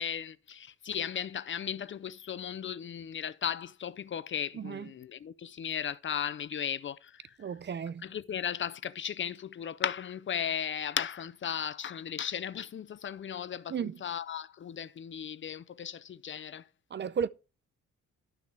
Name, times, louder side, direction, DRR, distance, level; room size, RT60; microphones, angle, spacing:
voice 1, 0.0-7.4 8.0-16.7, left 8 dB, 40° left, 0.5 m, -36 dB
voice 2, 4.5-4.9 7.4-8.0 13.7-14.0 16.9-17.3, right 7 dB, 40° right, 0.6 m, -33 dB
12.0 x 6.4 x 3.4 m
cardioid pair, 90°, 30 cm